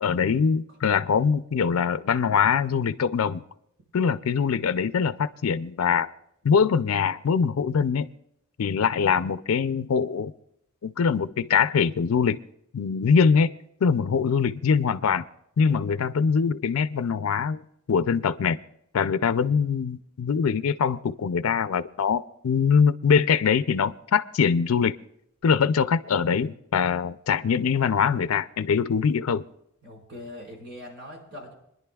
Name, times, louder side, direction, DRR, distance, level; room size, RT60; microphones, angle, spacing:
voice 1, 0.0-3.4 3.9-6.1 6.4-8.1 8.6-10.3 10.8-12.4 12.7-13.5 13.8-15.2 15.6-17.6 17.9-18.6 18.9-25.0 25.4-29.5, left 6 dB, 80° left, 13 dB, 0.4 m, -23 dB
voice 2, 15.6-16.0 29.8-31.5, left 1 dB, 55° right, -2 dB, 4.8 m, -42 dB
29.0 x 10.5 x 2.3 m, 0.75 s
head